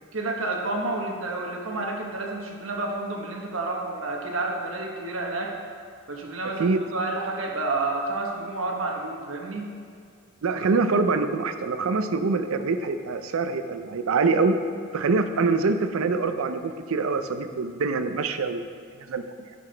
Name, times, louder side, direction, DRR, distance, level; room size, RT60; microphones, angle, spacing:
voice 1, 0.1-5.6 6.1-9.7, right 2 dB, 70° right, 1 dB, 1.1 m, -30 dB
voice 2, 10.4-14.5 14.9-18.7 19.1-19.2, right 4 dB, 90° right, 9 dB, 0.5 m, -24 dB
11.0 x 5.8 x 3.3 m, 2.1 s
head